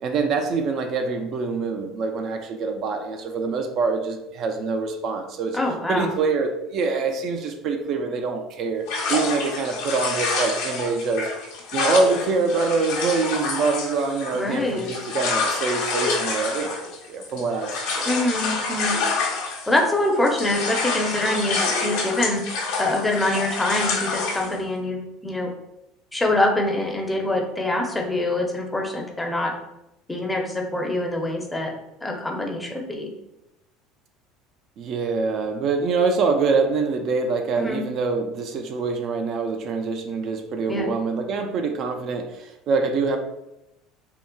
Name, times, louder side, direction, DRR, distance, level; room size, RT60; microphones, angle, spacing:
voice 1, 0.0-5.6 5.9-11.2 11.7-17.9 34.8-43.2, right 4 dB, 55° right, 5 dB, 0.3 m, -25 dB
voice 2, 5.5-6.1 14.3-14.9 18.0-19.0 19.7-22.4 22.8-25.5 26.1-29.5 30.1-31.7 32.0-33.1 37.6-37.8 40.7-40.9, left 1 dB, 10° left, 1 dB, 0.5 m, -24 dB
sound 1, 8.9-20.0 20.2-24.6, left 4 dB, 80° left, 0.7 m, -27 dB
3.7 x 2.1 x 2.2 m, 0.89 s
supercardioid pair, 115°, 0 cm